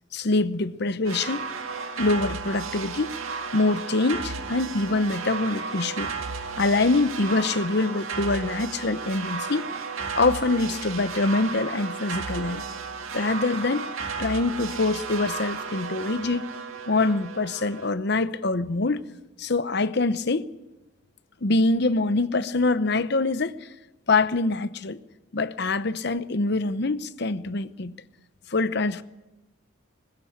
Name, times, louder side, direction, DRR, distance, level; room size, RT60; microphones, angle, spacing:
voice 1, 0.1-1.5 2.0-3.1 3.5-9.6 10.2-12.6 13.1-13.9 14.2-16.5 16.9-19.0 19.4-20.5 21.4-23.7 24.1-25.0 25.3-27.9 28.5-29.0, left 3 dB, 55° left, 0.8 m, -24 dB
sound 1, 1.0-17.9, right 5 dB, 90° right, 1.9 m, -34 dB
21.0 x 16.0 x 8.6 m
head